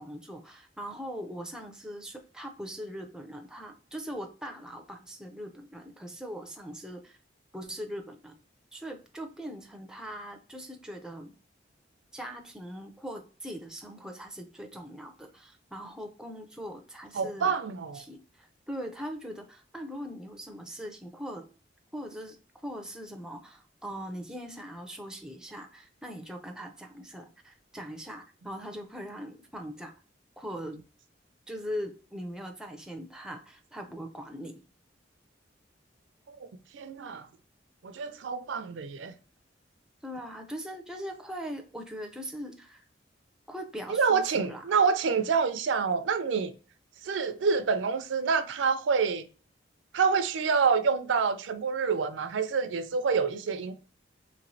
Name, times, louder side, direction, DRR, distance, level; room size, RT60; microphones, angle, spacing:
voice 1, 0.0-7.2 7.5-8.4 8.7-11.3 12.1-17.5 17.9-21.4 21.9-22.4 22.6-29.9 30.4-30.8 31.5-34.6 40.0-42.8 43.5-44.6, equal, 5° right, 0.4 m, -41 dB
voice 2, 17.1-18.0 36.3-36.5 36.7-37.3 37.8-39.1 43.9-46.5 47.0-49.3 49.9-53.7, right 5 dB, 80° right, 0.4 m, -27 dB
3.1 x 3.0 x 2.6 m
head